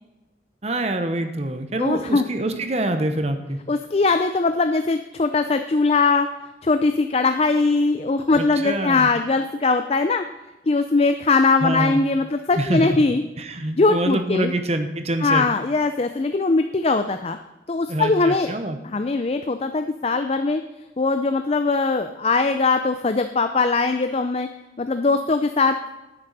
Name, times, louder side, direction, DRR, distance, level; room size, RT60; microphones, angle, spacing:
voice 1, 0.6-3.6 8.3-9.1 11.6-12.0 12.6-13.0 13.4-15.5 17.9-18.8, right 1 dB, 35° right, 8 dB, 0.9 m, -25 dB
voice 2, 1.8-2.2 3.7-6.3 6.6-10.2 10.7-13.2 13.8-14.5 15.2-17.4 17.7-18.5 18.8-20.6 21.0-24.5 24.8-25.8, left 3 dB, 35° left, 8 dB, 0.4 m, -21 dB
10.5 x 8.8 x 4.1 m, 1.1 s
head